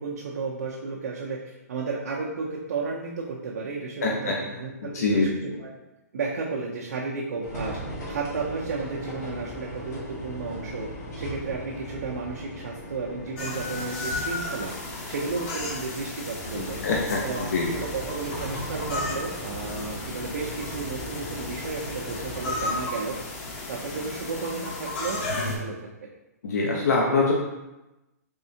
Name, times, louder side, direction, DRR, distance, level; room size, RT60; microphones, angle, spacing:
voice 1, 0.0-5.7 6.1-7.8 8.1-10.9 11.2-14.8 15.1-16.8 17.2-23.2 23.7-25.9, right 4 dB, 75° right, -3 dB, 0.6 m, -33 dB
voice 2, 4.0-4.4 4.9-5.3 16.6-17.7 26.4-27.3, left 3 dB, 70° left, -2 dB, 0.7 m, -24 dB
sound 1, 7.4-22.8, equal, 90° left, 1.4 m, -38 dB
sound 2, 13.4-25.6, left 2 dB, 45° left, 0.9 m, -34 dB
3.6 x 3.3 x 2.7 m, 1.0 s
hypercardioid pair, 140°, 9 cm